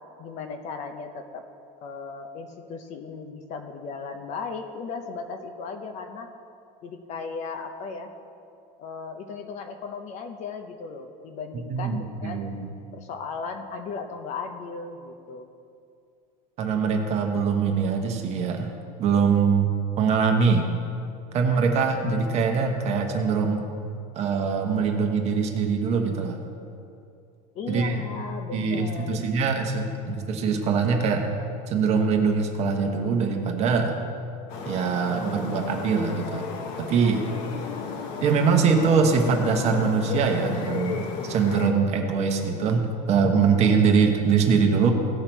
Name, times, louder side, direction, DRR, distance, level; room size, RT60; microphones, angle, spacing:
voice 1, 0.2-1.4 1.8-6.3 6.8-8.1 8.8-12.5 12.9-15.5 27.6-29.3 37.8-37.9, left 5 dB, 35° left, 6 dB, 0.6 m, -36 dB
voice 2, 11.7-12.7 16.6-18.7 19.0-19.7 20.0-20.7 21.3-23.6 24.1-26.4 27.7-28.0 28.5-31.3 31.7-33.9 34.6-37.2 38.2-44.9, right 5 dB, 30° right, 3 dB, 1.0 m, -23 dB
sound 1, 34.5-41.7, left 5 dB, 50° left, 1.0 m, -34 dB
17.0 x 5.8 x 4.5 m, 2.5 s
cardioid pair, 170°, 21 cm